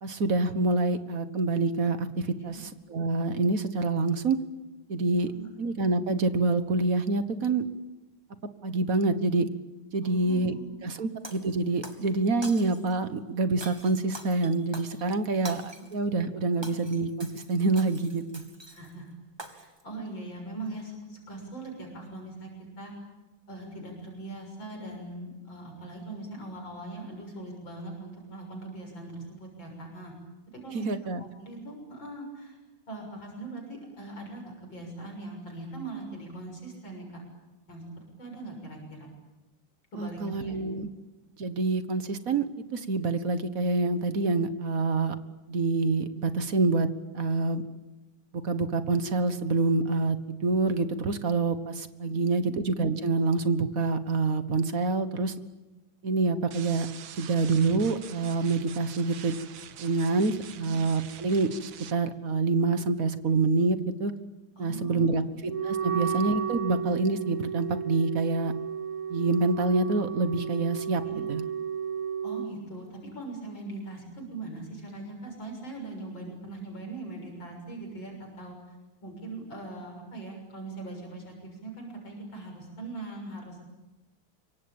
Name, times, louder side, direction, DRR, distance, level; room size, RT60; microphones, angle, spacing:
voice 1, 0.0-4.4 4.9-5.3 5.6-7.6 8.6-9.5 9.9-10.5 10.8-18.4 30.7-31.2 40.0-40.9 41.4-42.5 42.7-45.1 45.5-46.9 47.1-47.6 48.4-55.3 56.0-56.9 57.1-59.3 59.8-61.5 61.9-64.1 64.6-68.5 69.1-71.0 71.3-71.4, right 3 dB, 45° right, 11 dB, 1.6 m, -26 dB
voice 2, 10.0-10.7 15.8-15.9 16.6-16.7 18.7-19.1 19.5-22.9 23.5-30.1 30.5-30.9 31.2-32.6 32.9-37.1 37.7-37.9 38.2-39.1 39.9-40.7 52.3-52.5 60.6-60.8 64.6-65.2 71.0-71.2 72.2-78.8 79.0-83.6, right 2 dB, 65° left, 1 dB, 7.4 m, -41 dB
Shatter, 11.2-12.1 12.4-13.0 13.6-16.0 16.4-18.9 19.4-19.8, right 1 dB, 10° right, 2.3 m, -45 dB
sound 1, 56.5-61.9, right 10 dB, 75° right, 1.8 m, -45 dB
Wind instrument woodwind instrument, 65.5-72.5, right 7 dB, 30° right, 0.6 m, -33 dB
26.5 x 24.0 x 8.8 m, 1.1 s
omnidirectional pair, 2.2 m